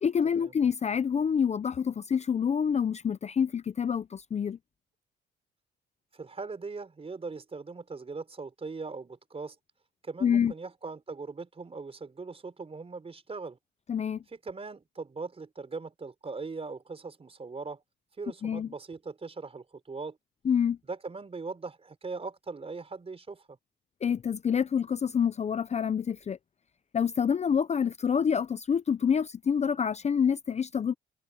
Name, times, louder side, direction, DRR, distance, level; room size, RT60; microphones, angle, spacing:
voice 1, 0.0-4.6 10.2-10.5 13.9-14.2 18.4-18.7 20.4-20.8 24.0-26.4 26.9-31.0, left 7 dB, 35° left, 0.6 m, -27 dB
voice 2, 6.1-9.6 10.0-13.6 14.3-17.8 18.2-20.2 20.9-23.6, right 4 dB, 30° right, 4.6 m, -40 dB
cardioid pair, 90°, 20 cm